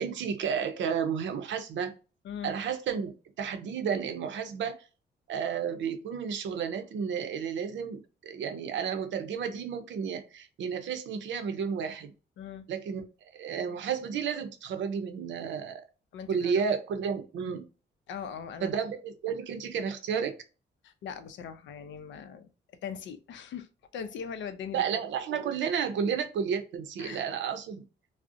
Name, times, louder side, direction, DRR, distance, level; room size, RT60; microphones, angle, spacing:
voice 1, 0.0-1.9 2.4-4.8 5.3-12.1 12.7-13.0 13.3-15.8 16.3-17.6 18.6-20.4 24.7-27.8, right 7 dB, 80° right, 7 dB, 0.5 m, -32 dB
voice 2, 2.2-2.6 12.4-12.7 16.1-16.5 18.1-18.7 20.8-22.5 22.8-23.7 23.9-25.0 27.0-27.2, left 7 dB, 80° left, 9 dB, 0.5 m, -40 dB
2.4 x 2.0 x 2.5 m, 0.33 s
cardioid pair, 95°, 19 cm